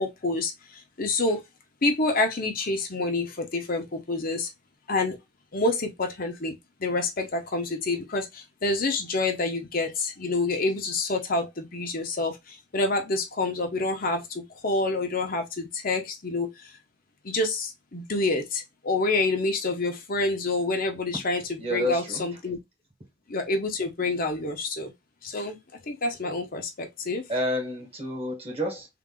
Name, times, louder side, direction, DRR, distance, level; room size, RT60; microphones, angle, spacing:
voice 1, 0.0-1.4 1.8-4.5 4.9-5.2 5.5-6.5 6.8-16.7 17.2-22.6 23.3-24.9 25.2-25.6 25.9-27.3, left 2 dB, 45° left, 0.9 m, -28 dB
voice 2, 21.6-22.2 27.3-28.9, left 1 dB, 30° right, 1.6 m, -29 dB
3.8 x 2.7 x 3.7 m
head